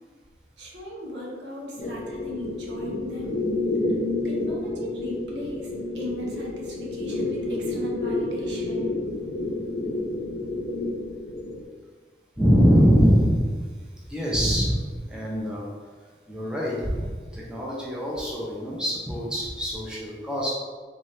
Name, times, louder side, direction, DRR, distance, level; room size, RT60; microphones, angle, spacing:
voice 1, 0.6-3.4 4.2-9.0, left 1 dB, 75° right, -3 dB, 0.9 m, -37 dB
sound 1, 1.8-11.6, left 2 dB, 65° left, 0.5 m, -29 dB
voice 2, 12.4-13.4 14.1-15.7 16.3-20.5, equal, 5° right, -6 dB, 0.6 m, -23 dB
3.7 x 2.9 x 3.1 m, 1.5 s
head